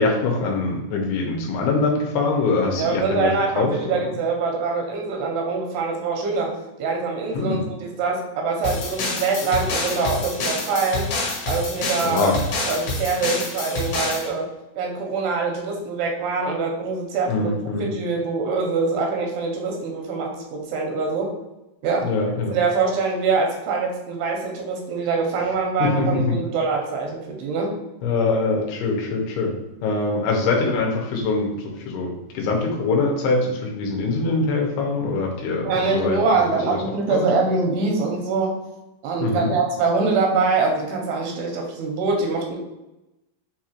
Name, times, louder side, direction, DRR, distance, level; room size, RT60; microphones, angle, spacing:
voice 1, 0.0-4.0 7.3-7.6 12.0-12.4 17.3-17.9 22.0-22.6 25.8-26.4 28.0-29.6 29.8-36.2 36.7-36.8 37.1-37.2 39.2-39.5, left 3 dB, 85° left, 0 dB, 2.7 m, -23 dB
voice 2, 2.8-6.5 6.8-11.1 11.5-12.3 12.7-14.5 14.8-17.5 17.8-21.3 21.8-22.1 22.5-27.7 35.6-38.5 39.0-42.6, right 4 dB, 85° right, 0 dB, 2.7 m, -24 dB
sound 1, 8.6-14.3, left 2 dB, 70° left, 2.7 m, -27 dB
6.4 x 2.4 x 3.0 m, 0.95 s
omnidirectional pair, 4.6 m